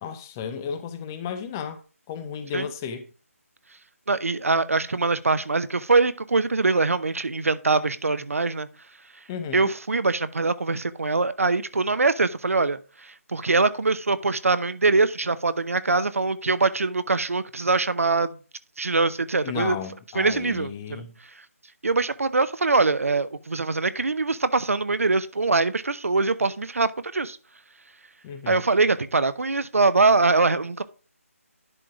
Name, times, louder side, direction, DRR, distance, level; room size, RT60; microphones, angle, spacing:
voice 1, 0.0-1.8 2.1-3.1 9.3-9.7 19.4-21.2 28.2-28.6, left 7 dB, 10° left, 0.3 m, -33 dB
voice 2, 4.1-8.7 9.5-18.3 18.8-19.8 20.1-21.0 21.8-27.4 28.5-30.8, right 3 dB, 65° right, 0.8 m, -23 dB
11.0 x 3.8 x 4.8 m
figure-of-eight pair, 155°, 8 cm